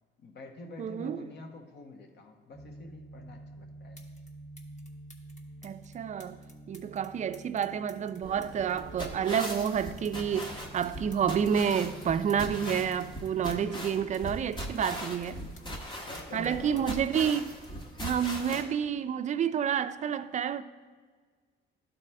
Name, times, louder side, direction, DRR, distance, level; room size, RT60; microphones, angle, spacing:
voice 1, 0.2-4.0 16.1-17.0, left 2 dB, 60° left, 1.1 m, -46 dB
voice 2, 0.8-1.2 5.6-15.4 16.3-17.6 18.0-20.6, right 8 dB, 35° right, 0.4 m, -29 dB
sound 1, 2.5-13.5, right 2 dB, 5° left, 0.9 m, -49 dB
sound 2, 3.5-3.6 3.9-4.3 4.6-10.1 10.4-14.2 14.5-16.5 16.8-18.6 19.5-19.7, left 2 dB, 40° left, 1.1 m, -56 dB
sound 3, 8.2-18.6, equal, 20° left, 1.2 m, -40 dB
12.0 x 4.1 x 3.3 m
cardioid pair, 90°, 20 cm